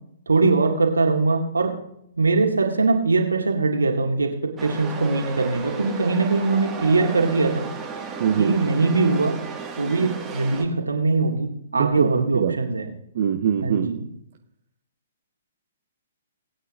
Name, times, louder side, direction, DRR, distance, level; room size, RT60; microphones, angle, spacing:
voice 1, 0.3-1.7 2.1-7.7 8.4-9.3 9.8-12.9 13.6-14.0, right 3 dB, 75° right, 2 dB, 2.1 m, -21 dB
Chatter / Subway metro underground, 4.6-10.6, right 5 dB, 15° right, 1.9 m, -34 dB
voice 2, 8.2-8.5 11.7-12.5 13.1-14.0, right 8 dB, 50° right, 4 dB, 0.8 m, -23 dB
20.0 x 8.9 x 2.6 m, 0.76 s
figure-of-eight pair, 120°, 0 cm